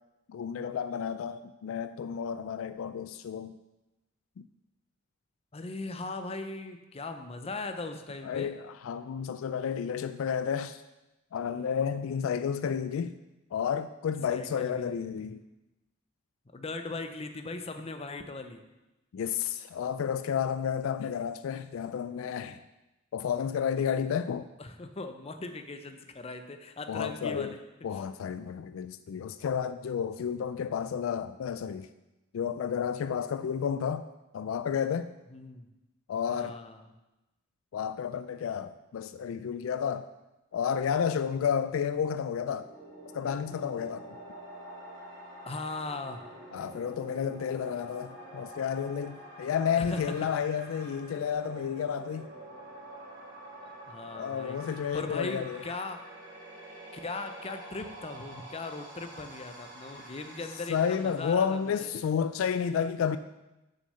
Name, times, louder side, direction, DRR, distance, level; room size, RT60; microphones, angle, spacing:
voice 1, 0.3-3.6 4.4-4.5 8.2-10.8 11.3-13.1 13.5-15.4 19.1-22.6 23.1-24.5 26.9-27.5 27.8-31.9 32.3-34.1 34.3-35.1 36.1-36.6 37.7-40.1 40.5-42.7 43.1-44.1 46.5-52.3 54.0-55.6 60.7-63.2, left 7 dB, 75° left, 0.3 m, -31 dB
voice 2, 5.5-8.6 14.3-15.3 16.5-18.6 24.6-27.6 35.3-35.7 36.3-36.9 45.5-46.2 49.7-50.0 53.9-54.6 54.9-56.0 56.9-61.9, left 3 dB, 30° left, 0.6 m, -39 dB
sound 1, 42.3-62.1, right 1 dB, 60° right, 2.1 m, -47 dB
6.5 x 6.5 x 5.5 m
head